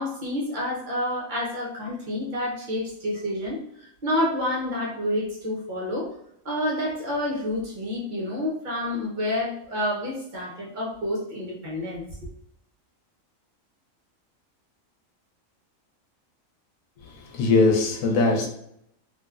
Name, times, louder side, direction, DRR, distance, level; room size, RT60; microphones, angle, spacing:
voice 1, 0.0-6.1 6.4-12.0, left 1 dB, 45° right, -4 dB, 0.7 m, -29 dB
voice 2, 17.2-18.5, left 3 dB, 80° left, 1 dB, 1.0 m, -21 dB
3.2 x 2.5 x 2.3 m, 0.72 s
omnidirectional pair, 1.4 m